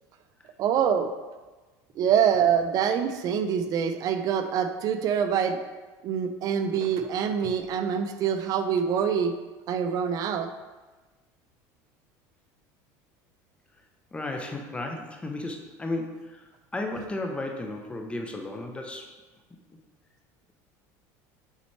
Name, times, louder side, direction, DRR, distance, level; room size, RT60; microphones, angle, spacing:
voice 1, 0.6-1.1 2.0-5.6 6.0-9.4 9.7-10.5, right 7 dB, 45° right, 8 dB, 0.6 m, -25 dB
voice 2, 14.1-19.1, left 2 dB, 15° left, 2 dB, 0.8 m, -34 dB
7.3 x 4.1 x 3.3 m, 1.2 s
supercardioid pair, 120°, 9 cm